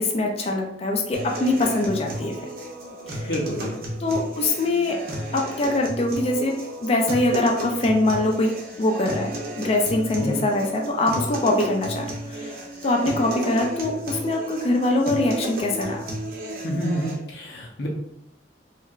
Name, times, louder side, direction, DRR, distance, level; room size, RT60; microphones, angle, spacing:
voice 1, 0.0-2.3 3.1-3.3 4.0-5.0 5.3-6.5 6.8-8.5 8.8-16.1, left 2 dB, 35° left, 1 dB, 0.4 m, -23 dB
sound 1, 1.1-17.1, right 1 dB, 55° right, 0.7 m, -33 dB
voice 2, 3.3-3.8 10.2-10.4 16.6-17.9, equal, 65° left, 0 dB, 0.8 m, -28 dB
3.2 x 3.2 x 2.4 m, 0.78 s
head